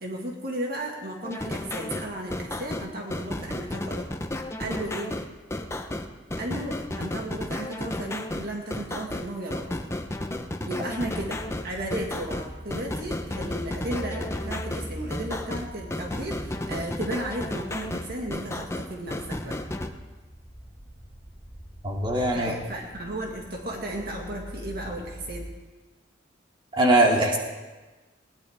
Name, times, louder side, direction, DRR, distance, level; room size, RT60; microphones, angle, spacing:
voice 1, 0.0-4.1 4.6-5.1 6.4-9.7 10.6-19.6 22.3-25.5, right 1 dB, 55° right, -1 dB, 2.0 m, -34 dB
sound 1, 1.2-19.9, left 1 dB, 15° left, 0.9 m, -33 dB
sound 2, 10.8-25.4, equal, 5° right, 6.2 m, -42 dB
voice 2, 21.8-22.5 26.8-27.4, right 1 dB, 25° right, -1 dB, 2.6 m, -21 dB
21.0 x 19.0 x 3.6 m, 1.2 s
head